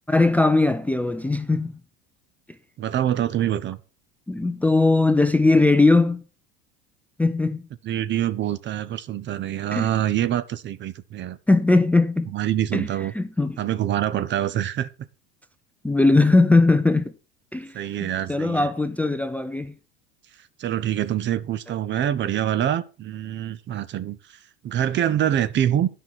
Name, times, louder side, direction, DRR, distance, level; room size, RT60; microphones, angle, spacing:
voice 1, 0.1-1.8 4.3-6.2 7.2-7.6 9.7-9.9 11.5-12.3 12.7-12.9 13.1-13.6 15.8-17.1 17.5-19.7, left 2 dB, 5° left, 0.5 m, -19 dB
voice 2, 2.8-3.8 7.8-11.4 12.3-13.1 13.6-14.9 17.7-18.7 20.6-25.9, right 11 dB, 40° right, 0.8 m, -25 dB
9.9 x 5.7 x 6.0 m
supercardioid pair, 115°, 29 cm